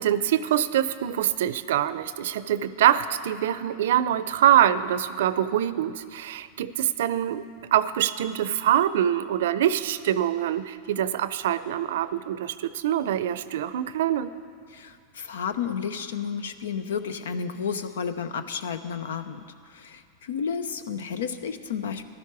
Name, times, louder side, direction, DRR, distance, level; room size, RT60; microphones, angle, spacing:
voice 1, 0.0-7.4 7.7-14.3, right 11 dB, 75° right, 15 dB, 0.5 m, -24 dB
voice 2, 14.7-19.4 19.7-22.0, left 6 dB, 85° left, 11 dB, 0.7 m, -32 dB
15.0 x 12.0 x 4.8 m, 2.3 s
hypercardioid pair, 115°, 0 cm